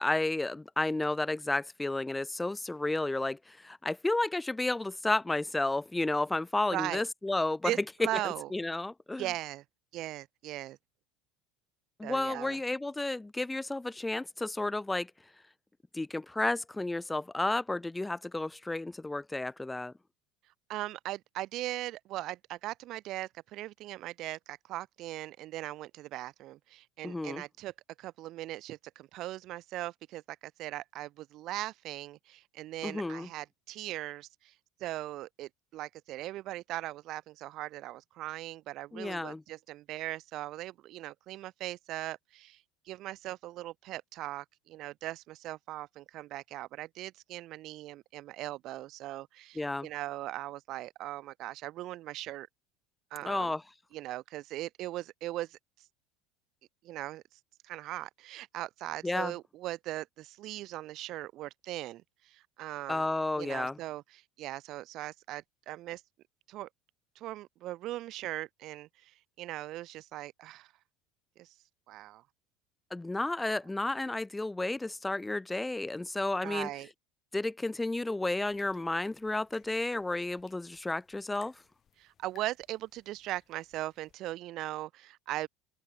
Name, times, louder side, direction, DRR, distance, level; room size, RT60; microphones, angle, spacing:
voice 1, 0.0-7.7 8.2-9.3 12.0-15.1 15.9-19.9 27.0-27.4 32.8-33.3 38.9-39.4 49.6-49.9 53.2-53.6 59.0-59.3 62.9-63.8 72.9-76.7 77.3-81.6, left 2 dB, 10° left, 0.5 m, -32 dB
voice 2, 6.7-7.0 7.6-8.5 9.2-9.6 9.9-10.8 12.0-12.6 20.7-27.7 28.0-34.5 34.8-52.5 53.1-53.5 53.9-55.6 56.8-57.2 57.6-63.1 63.4-66.0 66.5-66.7 67.2-70.7 71.4-71.5 71.9-72.2 76.4-76.9 82.0-85.5, right 15 dB, 55° right, 0.7 m, -39 dB
sound 1, 78.3-84.2, left 9 dB, 40° left, 5.1 m, -64 dB
hypercardioid pair, 85°, 0 cm